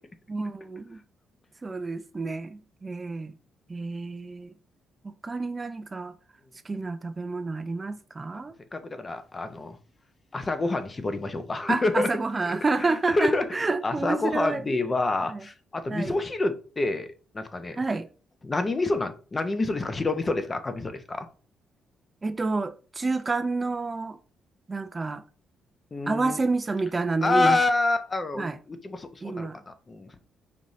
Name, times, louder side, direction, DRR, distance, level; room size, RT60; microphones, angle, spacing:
voice 1, 0.3-1.0 1.6-3.4 3.7-4.5 5.0-6.1 6.6-8.5 11.7-14.6 15.3-15.4 15.9-16.2 17.7-18.1 22.2-24.2 24.7-25.2 26.1-27.6 28.4-28.6 29.2-29.6, right 3 dB, 25° right, 0.3 m, -29 dB
voice 2, 8.7-9.8 10.3-12.1 12.8-17.8 18.4-21.3 25.9-26.4 27.2-30.1, left 2 dB, 25° left, 0.6 m, -27 dB
5.3 x 2.7 x 3.1 m
cardioid pair, 90°, 0 cm